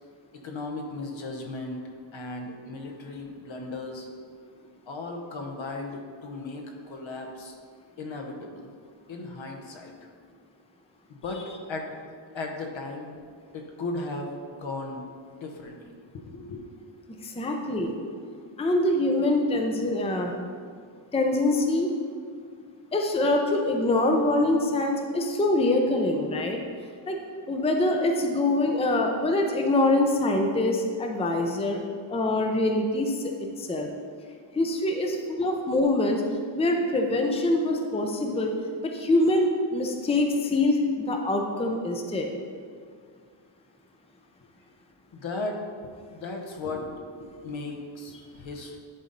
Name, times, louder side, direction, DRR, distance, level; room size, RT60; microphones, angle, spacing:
voice 1, 0.3-1.8 2.1-4.1 4.9-7.6 8.0-8.7 9.1-9.9 11.1-12.0 12.3-13.1 13.5-15.0 15.4-16.6 45.1-48.8, left 2 dB, 70° left, 2 dB, 1.1 m, -36 dB
voice 2, 17.2-17.9 18.6-20.3 21.1-21.9 22.9-26.6 27.1-27.2 27.5-31.8 32.1-33.9 34.5-36.2 36.5-38.5 38.8-42.3, left 2 dB, 15° left, 3 dB, 0.5 m, -24 dB
10.5 x 4.1 x 3.9 m, 2.1 s
wide cardioid pair, 120°, 48 cm